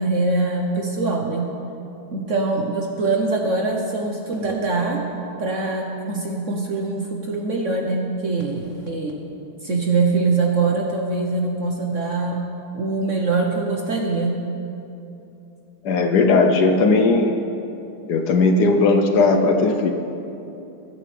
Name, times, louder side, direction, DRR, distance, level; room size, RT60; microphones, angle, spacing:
voice 1, 0.0-1.5 2.1-5.0 5.4-9.1 9.6-12.4 12.7-14.4, right 3 dB, 50° right, 1 dB, 1.0 m, -23 dB
voice 2, 15.8-17.4 18.1-19.9, left 3 dB, 65° left, 5 dB, 1.1 m, -17 dB
21.0 x 8.5 x 3.3 m, 2.9 s
omnidirectional pair, 2.1 m